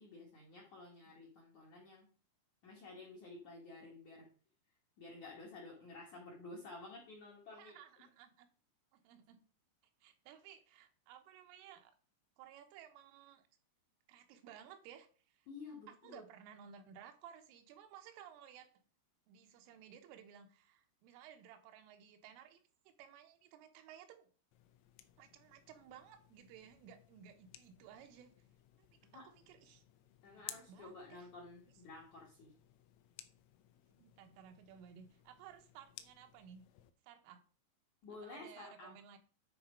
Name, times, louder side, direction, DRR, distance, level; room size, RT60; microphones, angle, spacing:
voice 1, 0.0-2.1 2.6-4.3 5.0-7.8 15.5-16.2 29.1-29.3 30.2-32.6 38.0-38.9, left 3 dB, 65° left, -3 dB, 1.9 m, -52 dB
voice 2, 7.5-8.5 8.9-9.4 10.0-11.9 12.4-13.4 14.1-15.5 15.9-18.8 19.3-24.3 25.2-28.3 28.8-28.9 29.1-29.8 30.3-31.3 34.0-36.6 37.0-37.4 38.2-39.2, right 9 dB, 80° right, 6 dB, 3.4 m, -57 dB
sound 1, 24.5-36.9, left 13 dB, 80° left, 3.2 m, -58 dB
10.5 x 4.2 x 5.1 m, 0.39 s
omnidirectional pair, 5.8 m